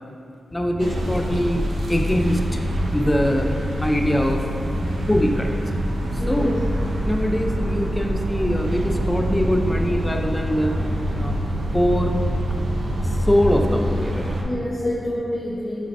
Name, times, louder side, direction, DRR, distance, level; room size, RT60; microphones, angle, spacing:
voice 1, 0.5-2.6 2.9-3.5 3.8-4.5 5.1-5.6 6.3-6.6 7.0-10.8 11.1-11.3 11.7-12.2 13.3-14.3 14.8-14.9, equal, 15° left, 3 dB, 0.6 m, -22 dB
sound 1, 0.8-14.4, equal, 75° right, 0.9 m, -25 dB
voice 2, 4.7-5.1 6.2-6.5 14.4-15.9, left 1 dB, 30° left, -7 dB, 1.0 m, -29 dB
7.5 x 6.4 x 2.7 m, 2.5 s
wide cardioid pair, 105°, 0 cm